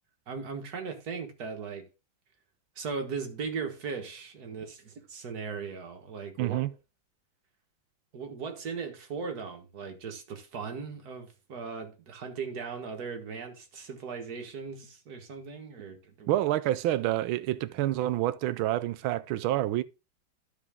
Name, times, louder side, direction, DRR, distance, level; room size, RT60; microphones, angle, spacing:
voice 1, 0.3-1.9 2.8-6.6 8.1-16.4, right 5 dB, 50° right, 1.9 m, -38 dB
voice 2, 6.4-6.7 16.3-19.8, right 14 dB, 90° right, 1.4 m, -28 dB
12.5 x 4.8 x 3.6 m
omnidirectional pair, 2.2 m